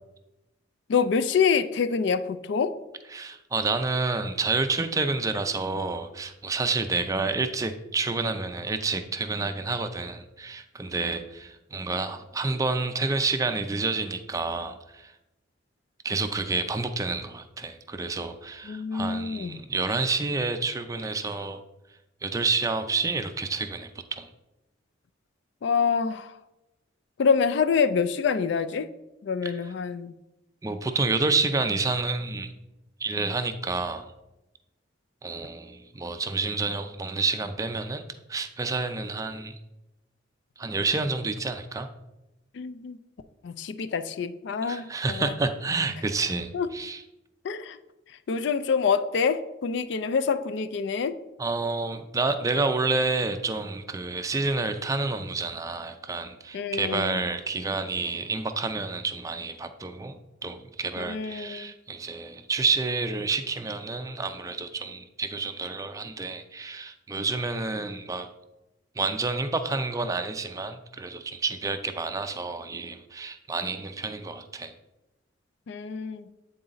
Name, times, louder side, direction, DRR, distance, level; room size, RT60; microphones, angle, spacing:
voice 1, 0.9-2.7 18.7-19.6 25.6-26.3 27.2-28.9 29.2-30.1 42.5-43.0 43.4-45.3 46.5-46.7 47.4-47.8 48.3-51.2 56.5-57.2 61.0-61.7 75.7-76.2, left 6 dB, 60° left, 11 dB, 0.3 m, -26 dB
voice 2, 3.1-15.1 16.0-21.6 22.2-24.3 29.4-29.5 30.6-32.5 33.0-34.1 35.2-38.0 38.3-39.6 40.6-41.9 44.6-47.0 51.4-68.3 69.0-74.7, right 3 dB, 15° right, 8 dB, 0.4 m, -29 dB
8.6 x 3.9 x 3.9 m, 0.98 s
head